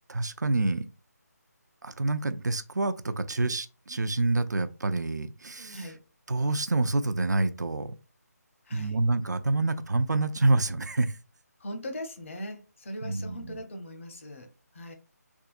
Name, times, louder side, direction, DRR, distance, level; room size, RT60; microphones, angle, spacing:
voice 1, 0.1-0.9 1.8-5.9 6.3-7.9 8.7-11.2 13.0-13.6, right 2 dB, 80° right, 0.4 m, -27 dB
voice 2, 8.6-9.0 11.6-14.9, left 1 dB, 50° left, 0.8 m, -40 dB
3.6 x 2.7 x 2.5 m
figure-of-eight pair, 155°, 9 cm